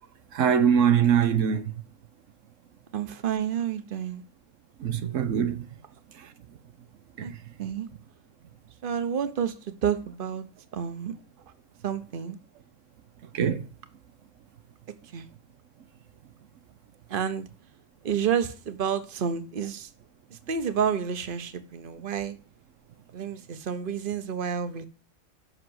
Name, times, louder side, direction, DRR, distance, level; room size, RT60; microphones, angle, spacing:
voice 1, 0.3-1.7 4.8-5.6 6.2-6.3 7.2-7.3 13.3-13.7, right 8 dB, 80° right, 1.2 m, -23 dB
voice 2, 2.9-4.2 7.2-7.3 7.6-7.9 8.8-9.5 9.8-10.5 10.7-11.1 11.8-12.4 15.1-15.2 17.1-17.5 18.0-19.9 20.5-22.4 23.1-24.9, right 7 dB, 45° right, 1.1 m, -29 dB
7.8 x 5.9 x 7.8 m
omnidirectional pair, 1.3 m